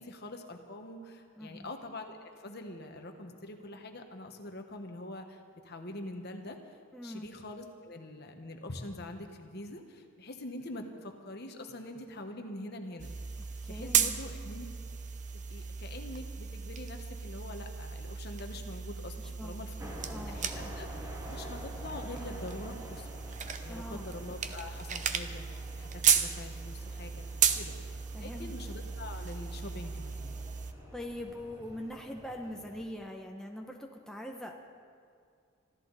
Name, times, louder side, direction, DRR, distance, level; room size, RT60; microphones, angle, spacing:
voice 1, 0.0-6.8 7.0-13.1 13.6-14.6 15.3-19.7 20.3-23.2 23.6-27.2 27.5-27.8 28.2-30.3, left 1 dB, 50° left, 5 dB, 1.4 m, -44 dB
voice 2, 1.4-1.7 6.9-7.3 13.6-14.2 19.2-20.4 23.7-24.1 28.1-28.5 30.9-34.5, left 1 dB, 5° left, 1 dB, 0.9 m, -43 dB
sound 1, 13.0-30.7, right 7 dB, 35° right, 0.7 m, -35 dB
sound 2, 19.8-32.9, equal, 15° right, 2.1 m, -49 dB
25.0 x 14.0 x 4.1 m, 2.2 s
head